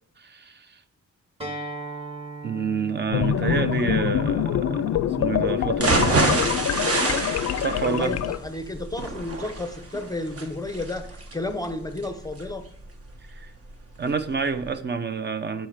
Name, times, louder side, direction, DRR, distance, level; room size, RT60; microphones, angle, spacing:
voice 1, 0.2-0.8 2.4-6.0 7.6-8.2 13.3-13.5 14.0-15.7, right 5 dB, 35° right, 0.7 m, -28 dB
Acoustic guitar, 1.4-6.6, right 2 dB, 20° right, 1.5 m, -40 dB
sound 1, 3.1-8.4, left 10 dB, 65° left, 0.4 m, -25 dB
sound 2, 5.7-13.7 14.1-14.2 14.6-14.7, right 3 dB, 50° right, 1.3 m, -27 dB
voice 2, 7.8-12.6, left 2 dB, 10° left, 0.5 m, -32 dB
9.1 x 5.8 x 6.6 m
wide cardioid pair, 165°, 29 cm